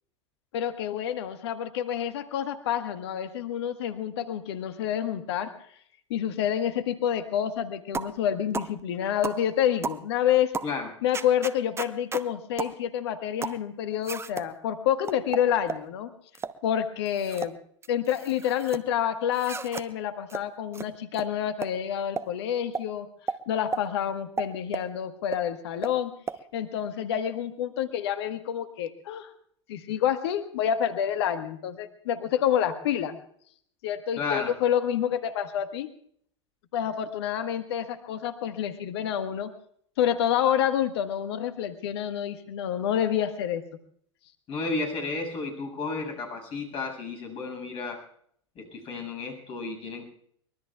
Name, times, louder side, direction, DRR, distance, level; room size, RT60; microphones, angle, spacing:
voice 1, 0.5-5.5 6.1-10.5 11.0-16.1 16.6-17.6 17.9-23.1 23.5-26.1 26.5-29.3 29.7-33.2 33.8-35.9 36.7-39.5 40.0-43.6, left 9 dB, 60° left, 9 dB, 1.5 m, -28 dB
sound 1, 7.9-8.2 8.5-8.7 9.2-9.4 9.8-10.0 10.5-10.7 11.1-12.3 12.6-12.8 13.4-13.6 14.0-14.5 15.1-15.9 16.3-16.6 17.1-17.5 17.8-18.8 19.3-19.9 20.3-20.4 20.7-20.9 21.1-21.3 21.6-21.7 22.2-22.3 22.7-22.9 23.3-23.4 23.7-23.8 24.4-24.9 25.3-25.4 25.8-25.9 26.3-26.4, right 5 dB, 15° right, 0.9 m, -33 dB
voice 2, 34.2-34.5 44.5-48.0 48.5-50.1, left 3 dB, 40° left, 4 dB, 6.8 m, -33 dB
24.0 x 22.0 x 2.4 m, 0.64 s
figure-of-eight pair, 85°, 15 cm